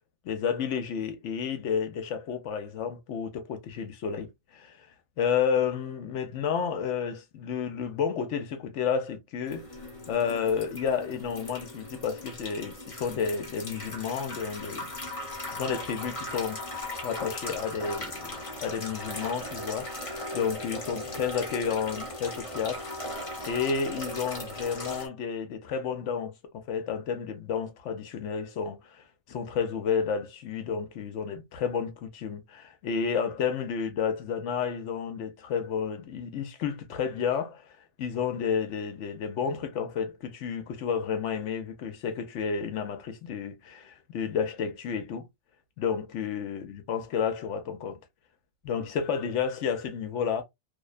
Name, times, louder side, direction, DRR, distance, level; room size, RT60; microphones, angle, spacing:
voice 1, 0.2-4.9 5.2-9.7 10.1-14.9 15.5-22.8 23.4-37.7 38.0-45.3 45.8-48.0 48.6-50.4, left 6 dB, 70° left, 0.9 m, -31 dB
water stream into sink with metalic echo, 9.5-25.1, left 1 dB, 35° left, 0.7 m, -38 dB
2.7 x 2.0 x 2.3 m
omnidirectional pair, 1.4 m